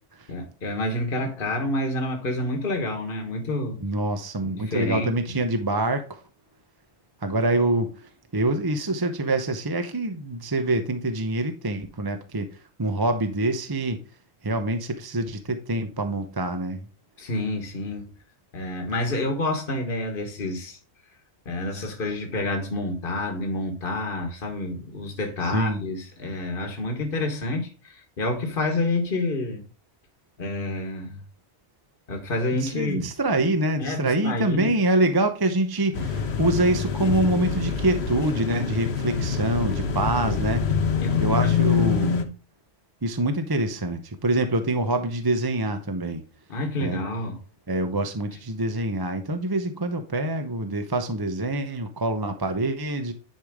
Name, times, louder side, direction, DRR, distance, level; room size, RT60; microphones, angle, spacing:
voice 1, 0.3-3.8 4.4-5.1 17.2-18.1 18.5-20.8 21.4-29.6 30.4-31.2 32.1-33.1 33.8-34.7 41.0-41.2 46.5-47.4, left 2 dB, 50° left, 1.6 m, -28 dB
voice 2, 3.8-6.2 7.2-12.5 12.8-14.0 14.4-16.9 25.4-25.8 32.6-40.6 41.2-42.2 43.0-46.2 46.8-47.0 47.7-53.1, right 2 dB, 20° right, 0.8 m, -25 dB
sound 1, 35.9-42.2, left 6 dB, 65° left, 1.3 m, -25 dB
10.5 x 4.9 x 3.6 m
omnidirectional pair, 1.2 m